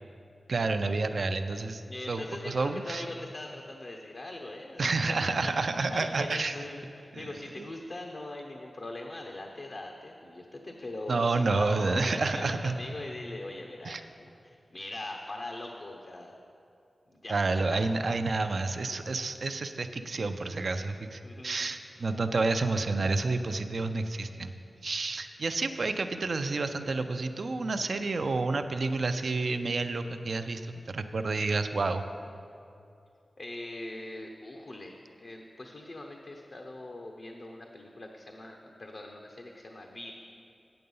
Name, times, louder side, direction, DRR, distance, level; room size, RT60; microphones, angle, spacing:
voice 1, 0.5-3.0 4.8-6.5 7.1-7.3 7.6-7.7 11.1-12.8 13.8-14.0 17.3-24.5 24.8-32.0, right 3 dB, 70° right, 8 dB, 0.5 m, -29 dB
voice 2, 1.9-5.5 5.9-16.3 17.1-17.5 17.7-17.8 21.2-21.7 33.4-40.1, left 2 dB, 60° left, 1 dB, 0.8 m, -41 dB
8.6 x 7.8 x 5.4 m, 2.5 s
cardioid pair, 45°, 0 cm